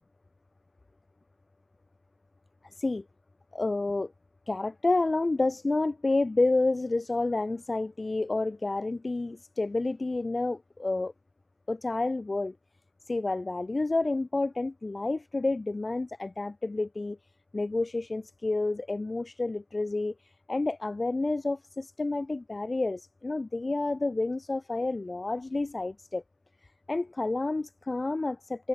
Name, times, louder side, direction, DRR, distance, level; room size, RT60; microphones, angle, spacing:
voice 1, 3.5-4.1 4.5-11.1 11.7-12.6 13.1-17.2 17.5-26.2 26.9-28.7, left 2 dB, 25° left, 0.5 m, -29 dB
cardioid pair, 85°, 0 cm